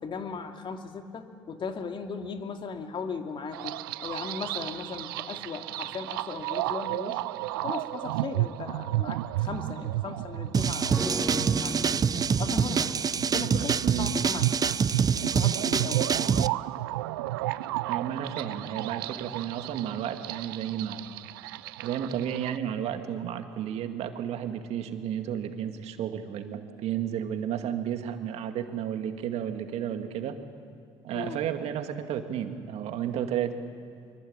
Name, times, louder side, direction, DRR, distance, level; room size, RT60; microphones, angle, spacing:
voice 1, 0.0-7.2 7.6-11.8 12.4-13.0 13.3-14.8 15.2-16.1 31.1-31.4, left 5 dB, 45° left, 5 dB, 2.7 m, -37 dB
sound 1, 3.5-22.6, right 17 dB, 85° right, 0.6 m, -33 dB
sound 2, 10.5-16.5, right 6 dB, 35° right, 0.6 m, -26 dB
sound 3, 10.9-20.3 20.6-20.7, right 1 dB, 15° right, 3.0 m, -40 dB
voice 2, 12.5-12.8 13.3-14.1 17.9-21.0 21.8-30.4 31.0-33.6, right 9 dB, 65° right, 6 dB, 2.2 m, -32 dB
24.5 x 23.5 x 8.9 m, 2.3 s
hypercardioid pair, 65°, 12 cm